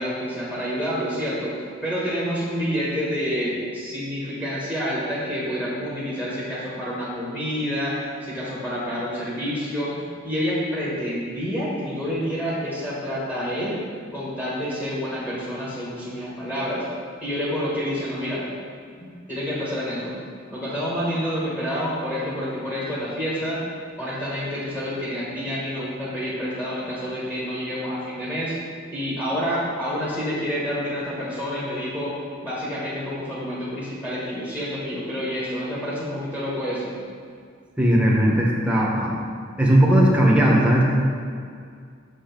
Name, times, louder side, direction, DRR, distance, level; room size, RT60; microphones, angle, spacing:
voice 1, 0.0-1.5 1.8-13.8 14.1-16.9 17.2-18.4 19.3-20.2 20.5-23.6 24.0-28.5 28.9-32.1 32.4-37.0, equal, 10° left, -8 dB, 1.6 m, -28 dB
voice 2, 37.8-39.1 39.6-40.8, right 1 dB, 5° right, -4 dB, 1.2 m, -17 dB
6.7 x 6.4 x 3.9 m, 2.2 s
head